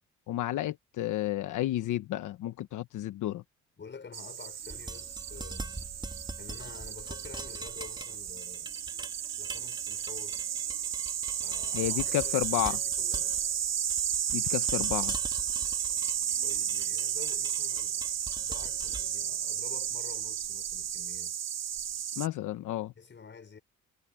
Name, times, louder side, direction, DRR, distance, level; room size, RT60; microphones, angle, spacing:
voice 1, 0.3-3.4 11.7-12.8 14.3-15.1 22.2-22.9, left 14 dB, 80° left, 1.1 m, -31 dB
voice 2, 3.8-5.8 6.4-8.8 9.4-10.5 11.4-13.4 16.4-21.3 23.0-23.6, left 5 dB, 40° left, 5.9 m, -49 dB
sound 1, 4.1-22.3, right 9 dB, 60° right, 1.4 m, -33 dB
sound 2, 4.6-20.7, right 2 dB, 15° right, 2.7 m, -44 dB
cardioid pair, 90°, 30 cm